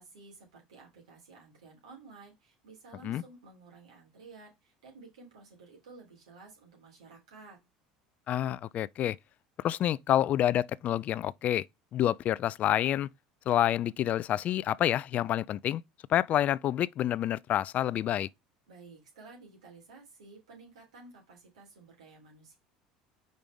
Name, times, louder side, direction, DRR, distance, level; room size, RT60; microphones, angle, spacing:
voice 1, 0.0-7.6 18.7-22.6, right 3 dB, 90° right, 3.6 m, -53 dB
voice 2, 8.3-9.2 9.6-11.7 11.9-13.1 13.5-15.8 16.1-18.3, left 12 dB, 50° left, 0.3 m, -28 dB
5.2 x 5.2 x 3.5 m
hypercardioid pair, 80°, 3 cm